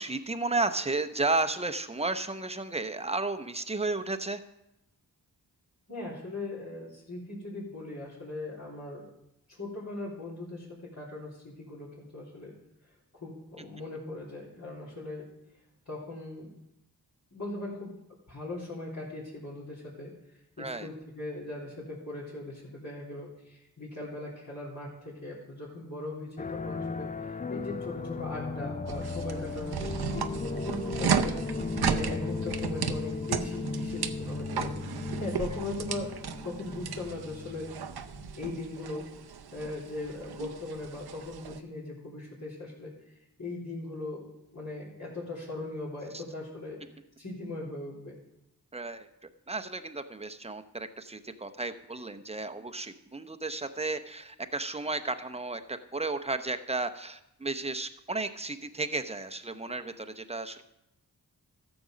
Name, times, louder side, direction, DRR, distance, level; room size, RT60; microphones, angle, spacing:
voice 1, 0.0-4.4 20.6-20.9 46.1-46.2 48.7-60.6, right 3 dB, 15° right, 8 dB, 0.8 m, -33 dB
voice 2, 5.9-9.1 9.5-12.5 13.2-15.3 15.9-16.5 17.3-17.9 18.3-20.1 20.6-34.7 35.1-36.2 36.4-37.7 38.4-39.1 39.5-42.9 43.4-44.2 44.5-46.8 47.2-48.1, left 2 dB, 55° left, -8 dB, 3.5 m, -39 dB
sound 1, 26.4-38.4, left 4 dB, 20° left, 0.4 m, -36 dB
sound 2, 28.9-41.6, right 7 dB, 85° right, 0.7 m, -35 dB
13.5 x 7.1 x 5.1 m, 0.85 s
wide cardioid pair, 55°, 37 cm